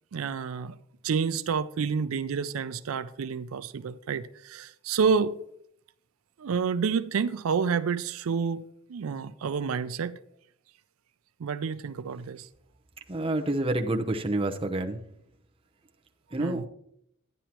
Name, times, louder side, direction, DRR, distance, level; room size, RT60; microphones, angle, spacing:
voice 1, 0.1-0.8 1.0-5.4 6.4-8.6 8.9-10.2 11.4-12.5 16.4-16.6, right 6 dB, 85° right, 0.4 m, -29 dB
voice 2, 13.1-15.0 16.3-16.7, right 1 dB, 25° right, 0.7 m, -28 dB
11.0 x 10.0 x 2.9 m
head